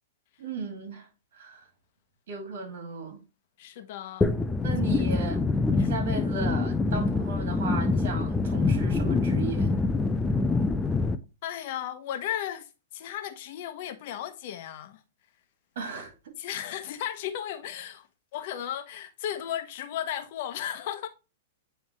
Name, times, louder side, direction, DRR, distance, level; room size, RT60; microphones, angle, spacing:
voice 1, 0.4-1.1 1.4-1.6 2.3-3.2 4.6-5.4 5.8-9.7 15.8-16.3, right 4 dB, 65° right, 2.5 m, -36 dB
voice 2, 3.6-4.4 5.3-5.9 11.4-15.0 16.4-21.1, left 11 dB, 55° left, 0.9 m, -35 dB
sound 1, 4.2-11.2, left 3 dB, 10° left, 0.6 m, -25 dB
9.0 x 3.5 x 3.0 m
hypercardioid pair, 120°, 0 cm